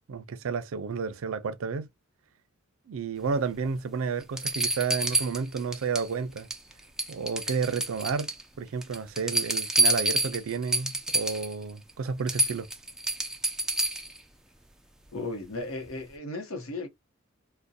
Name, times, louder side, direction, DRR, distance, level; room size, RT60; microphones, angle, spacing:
voice 1, 0.1-1.9 2.9-6.5 7.1-8.3 8.6-12.7, right 5 dB, 70° right, 0.4 m, -31 dB
sound 1, 3.7-3.8 4.4-6.1 6.4-6.7 7.0-8.4 8.8-11.5 11.9-12.0 12.3-14.2 15.9-16.0, right 2 dB, 5° right, 0.3 m, -28 dB
voice 2, 15.1-16.9, left 2 dB, 80° left, 0.8 m, -35 dB
2.6 x 2.1 x 2.2 m
head